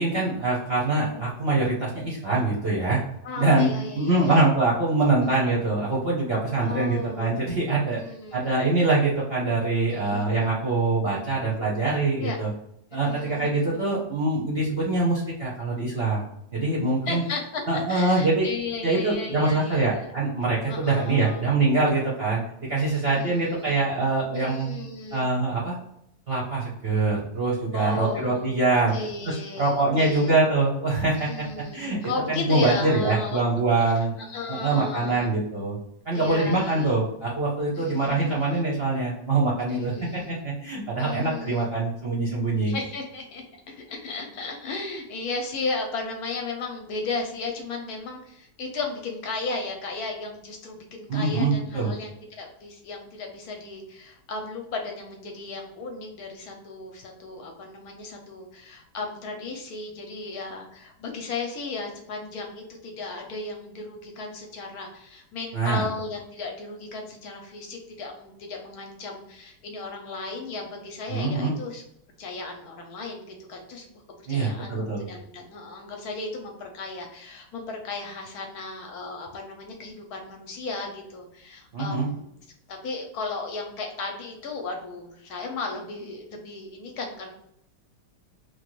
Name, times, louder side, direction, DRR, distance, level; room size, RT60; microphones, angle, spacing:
voice 1, 0.0-3.0 3.4-3.7 3.9-8.0 8.3-12.5 12.9-16.2 16.5-17.2 17.7-18.5 18.8-22.4 22.7-24.8 25.1-25.8 26.3-28.9 29.2-31.5 31.7-32.0 32.3-34.1 34.5-35.8 36.1-42.7 51.1-51.9 65.5-65.8 71.1-71.5 74.3-75.0 81.7-82.1, right 3 dB, 55° right, -5 dB, 0.7 m, -24 dB
voice 2, 3.2-4.4 5.2-5.3 6.5-7.4 8.0-8.5 9.9-10.5 12.2-12.4 13.0-13.8 17.0-17.6 17.9-20.2 20.7-21.5 22.9-23.8 24.3-25.3 27.7-28.6 28.9-30.4 31.2-33.4 34.2-35.3 36.1-36.9 37.8-38.7 39.7-40.3 41.0-41.7 42.7-71.8 72.2-82.2 82.7-87.3, left 3 dB, 70° left, 2 dB, 1.0 m, -35 dB
3.0 x 2.2 x 3.0 m, 0.78 s
omnidirectional pair, 1.9 m